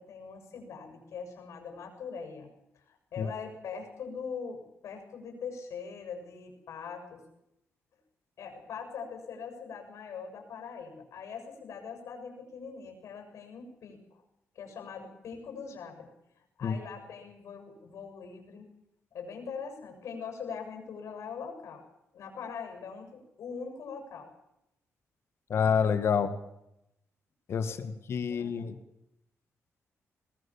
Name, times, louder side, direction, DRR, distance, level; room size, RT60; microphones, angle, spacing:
voice 1, 0.0-2.5 2.7-7.2 8.4-14.2 14.6-16.1 16.6-18.7 19.1-21.8 22.1-24.3 27.6-27.9 28.3-28.7, left 6 dB, 80° left, 4 dB, 7.0 m, -42 dB
voice 2, 25.5-26.3 27.5-28.8, left 7 dB, 55° left, 10 dB, 2.0 m, -28 dB
22.5 x 19.5 x 7.4 m, 0.84 s
wide cardioid pair, 145°, 5 cm